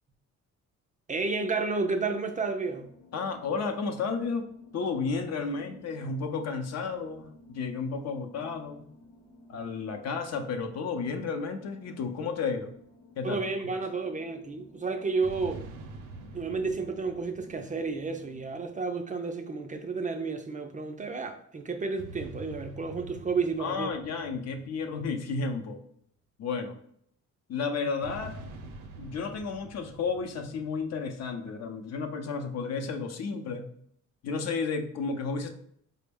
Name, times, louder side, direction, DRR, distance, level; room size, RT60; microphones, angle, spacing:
voice 1, 1.1-2.9 13.2-15.6 16.3-23.9, right 4 dB, 25° right, 0.4 m, -31 dB
sound 1, 2.6-18.5, left 1 dB, 40° left, 1.0 m, -56 dB
voice 2, 3.1-4.5 4.7-8.9 9.5-12.7 13.2-13.4 23.6-25.8 26.4-26.8 27.5-28.4 29.0-33.7 34.2-35.5, left 4 dB, 60° left, 0.6 m, -32 dB
sound 2, 15.2-18.9 22.0-25.7 28.0-31.5, right 2 dB, 90° right, 0.6 m, -46 dB
4.3 x 2.1 x 3.4 m
cardioid pair, 90°, 30 cm